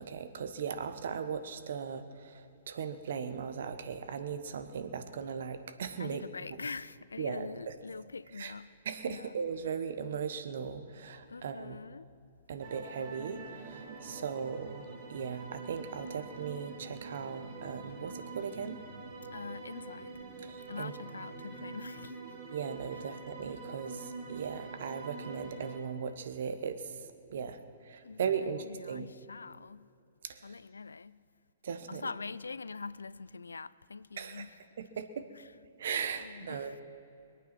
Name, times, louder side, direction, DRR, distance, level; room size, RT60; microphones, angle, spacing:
voice 1, 0.0-6.2 7.2-7.7 8.3-8.5 8.8-11.8 12.5-18.8 20.4-20.9 22.5-29.1 30.2-30.6 31.6-32.1 34.2-34.5 34.8-35.2 35.8-36.8, right 6 dB, 65° right, 1.1 m, -38 dB
voice 2, 6.0-8.7 9.0-9.3 11.3-12.1 19.3-20.3 20.7-22.2 28.0-29.9 30.4-31.2 31.9-34.6 36.2-36.8, left 4 dB, 85° left, 0.4 m, -44 dB
sound 1, 12.6-25.8, right 3 dB, 45° right, 2.8 m, -45 dB
22.0 x 9.0 x 6.0 m
hypercardioid pair, 125°, 0 cm